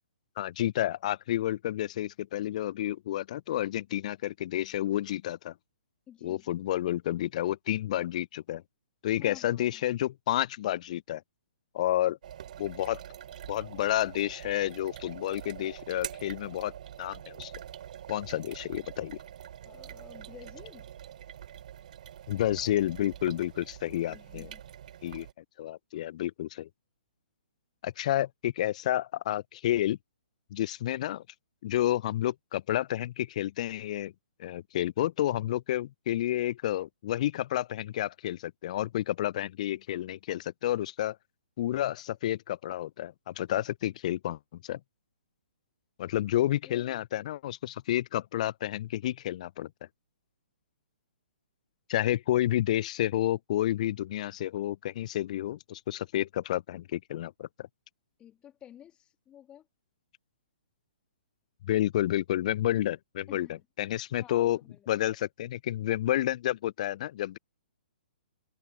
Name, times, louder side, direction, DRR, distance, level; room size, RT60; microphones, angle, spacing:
voice 1, 0.4-5.5 6.2-8.6 9.0-11.2 11.7-12.2 12.6-13.0 13.5-16.7 17.0-17.5 18.1-19.2 22.3-24.5 25.0-25.3 25.6-26.7 27.8-30.0 30.5-31.2 31.6-34.1 34.4-41.2 41.6-44.8 46.0-49.7 51.9-57.7 61.6-63.5 63.8-64.6 64.9-67.4, left 13 dB, 45° left, 0.4 m, -30 dB
voice 2, 6.1-6.4 9.2-9.8 19.6-20.9 23.8-24.6 46.3-47.0 58.2-59.7 63.3-63.6 64.2-64.9, left 10 dB, 20° left, 1.7 m, -52 dB
sound 1, 12.2-25.3, right 10 dB, 50° right, 2.4 m, -45 dB
figure-of-eight pair, 125°, 5 cm